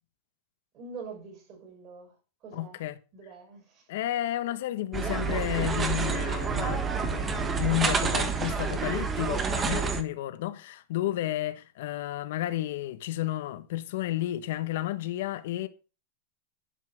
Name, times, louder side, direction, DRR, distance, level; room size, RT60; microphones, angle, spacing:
voice 1, 0.7-2.2 2.4-2.8 3.1-3.9, right 4 dB, 40° right, 6.9 m, -44 dB
voice 2, 2.5-3.0 3.9-15.7, left 14 dB, 70° left, 1.2 m, -32 dB
sound 1, 4.9-10.0, right 5 dB, 20° right, 1.3 m, -28 dB
11.5 x 5.7 x 6.4 m
supercardioid pair, 145°, 0 cm